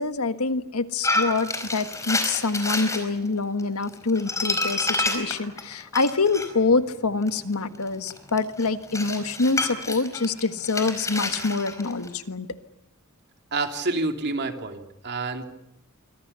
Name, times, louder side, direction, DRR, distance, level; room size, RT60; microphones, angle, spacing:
voice 1, 0.0-12.5, left 3 dB, 80° left, 10 dB, 1.6 m, -25 dB
sound 1, 1.0-3.0 3.6-6.5 7.2-12.1, left 2 dB, 15° left, 4.7 m, -28 dB
voice 2, 13.5-15.4, right 3 dB, 50° right, 5 dB, 3.0 m, -28 dB
27.0 x 24.5 x 7.0 m, 0.82 s
head